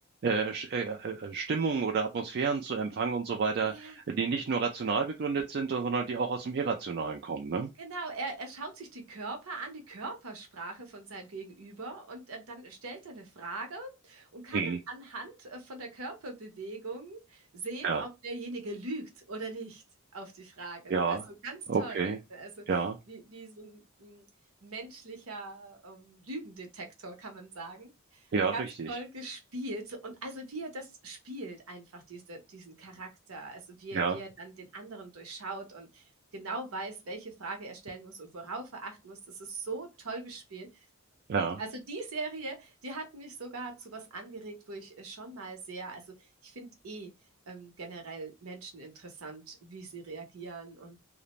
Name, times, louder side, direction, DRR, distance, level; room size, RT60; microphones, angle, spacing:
voice 1, 0.2-7.7 14.5-14.8 17.8-18.0 20.9-21.2 21.7-22.2 22.7-23.0 28.3-29.0 33.9-34.2 41.3-41.6, right 5 dB, 45° right, 0.3 m, -30 dB
voice 2, 3.6-4.0 7.8-19.8 20.1-22.7 23.1-24.3 24.6-28.2 28.5-36.0 36.3-40.7 41.6-46.2 46.4-47.1 47.5-51.0, right 3 dB, 70° right, 0.8 m, -41 dB
2.5 x 2.0 x 2.9 m
head